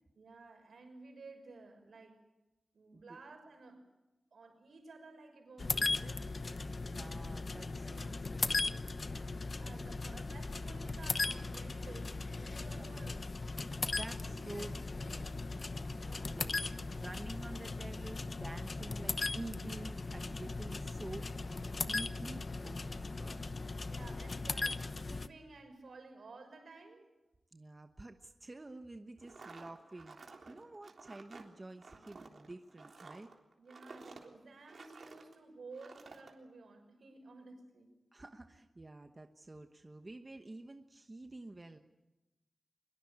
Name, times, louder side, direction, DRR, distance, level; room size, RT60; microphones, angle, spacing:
voice 1, 0.2-2.2 2.7-3.9 4.3-6.2 9.6-13.2 13.8-14.7 16.0-16.4 23.9-27.1 33.6-37.9, right 3 dB, 75° right, 5 dB, 6.2 m, -54 dB
sound 1, 5.6-25.3, left 3 dB, 40° left, 0.9 m, -38 dB
voice 2, 6.6-8.9 12.7-13.2 13.9-14.7 15.0-15.3 16.2-16.6 16.9-23.4 27.5-33.3 38.1-41.8, right 2 dB, 25° right, 6 dB, 1.1 m, -49 dB
sound 2, 29.2-35.3 35.7-36.3, right 3 dB, 55° right, 3.5 m, -53 dB
23.5 x 22.5 x 8.7 m, 1.0 s
wide cardioid pair, 140°, 0 cm